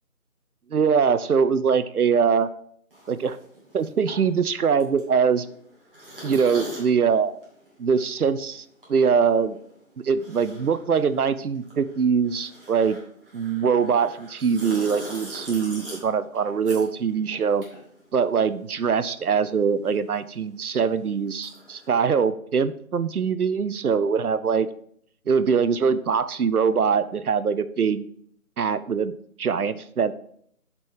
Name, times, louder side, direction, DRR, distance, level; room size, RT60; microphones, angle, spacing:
voice 1, 0.7-2.5 3.1-3.4 3.7-5.5 6.2-7.3 7.8-8.6 8.9-9.6 10.0-13.0 13.3-17.7 18.1-24.7 25.3-28.1 28.6-29.1 29.4-30.1, right 6 dB, 85° right, 15 dB, 0.6 m, -23 dB
Sipping Tea, 2.9-18.7 19.0-21.9, right 1 dB, 40° right, 2.2 m, -43 dB
6.7 x 4.5 x 3.6 m, 0.65 s
figure-of-eight pair, 160°, 44 cm